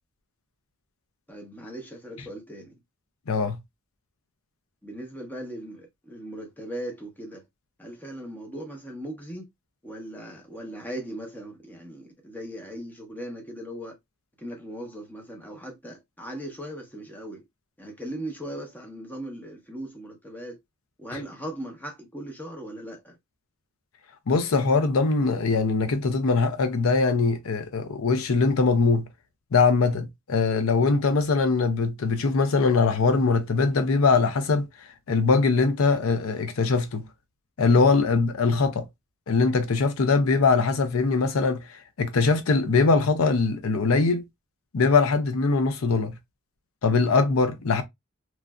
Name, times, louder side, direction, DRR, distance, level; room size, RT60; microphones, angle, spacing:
voice 1, 1.3-2.7 4.8-7.4 7.8-9.5 9.8-14.0 14.4-17.4 17.8-20.6 21.0-23.2, right 1 dB, 10° left, 0.8 m, -38 dB
voice 2, 3.3-3.6 24.3-29.1 29.5-34.7 35.1-37.1 37.6-38.9 39.3-44.2 44.7-46.1 46.8-47.8, left 4 dB, 80° left, 0.5 m, -22 dB
3.1 x 2.5 x 2.2 m
head